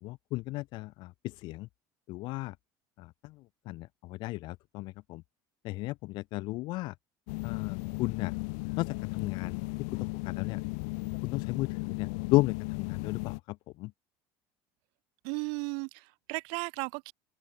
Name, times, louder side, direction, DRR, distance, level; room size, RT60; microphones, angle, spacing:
voice 1, 0.0-1.7 2.1-2.6 3.0-5.2 5.6-6.9 7.4-8.3 8.8-9.6 9.9-10.6 11.2-13.9, left 20 dB, 65° left, 2.0 m, -34 dB
sound 1, 7.3-13.4, left 30 dB, 85° left, 2.6 m, -36 dB
voice 2, 15.2-17.1, right 37 dB, 80° right, 6.0 m, -35 dB
cardioid pair, 135°, 9 cm